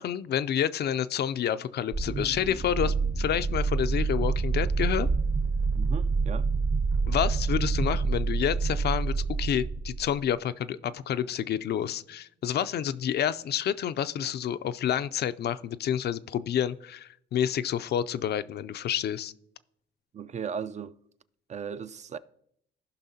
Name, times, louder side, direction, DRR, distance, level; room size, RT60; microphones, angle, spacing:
voice 1, 0.0-5.1 7.1-19.3, left 9 dB, 55° left, 0.4 m, -29 dB
sound 1, 1.9-10.1, right 4 dB, 55° right, 1.4 m, -27 dB
voice 2, 5.7-6.5 20.1-20.9 21.5-22.2, right 7 dB, 35° right, 0.4 m, -36 dB
15.5 x 5.7 x 2.8 m
cardioid pair, 90°, 20 cm